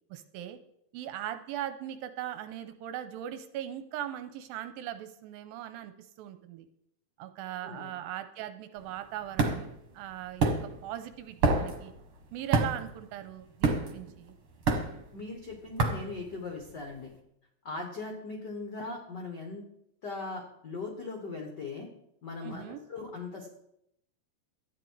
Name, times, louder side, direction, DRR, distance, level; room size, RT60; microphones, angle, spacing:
voice 1, 0.1-0.6 0.9-6.7 7.2-11.9 12.3-14.4 22.4-22.8, right 11 dB, 80° right, 10 dB, 2.3 m, -39 dB
voice 2, 7.6-7.9 15.1-17.1 17.6-19.6 20.0-21.9 22.2-23.5, left 3 dB, 75° left, 1 dB, 0.9 m, -39 dB
sound 1, 8.8-16.9, right 3 dB, 50° right, 1.8 m, -30 dB
13.0 x 9.4 x 4.8 m, 0.77 s
omnidirectional pair, 4.4 m